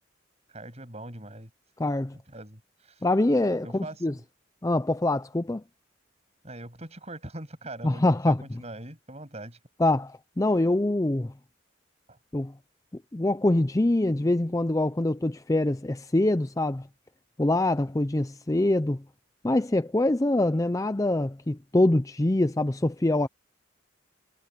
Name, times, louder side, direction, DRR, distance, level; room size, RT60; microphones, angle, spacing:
voice 1, 0.5-1.5 2.3-3.0 3.6-4.2 6.4-9.6 12.1-12.2, right 1 dB, 30° right, 7.8 m, -42 dB
voice 2, 1.8-2.2 3.0-4.2 4.6-5.6 7.8-8.4 9.8-11.3 12.3-12.5 13.1-16.9 17.4-19.0 19.4-23.3, left 1 dB, 15° left, 0.5 m, -24 dB
head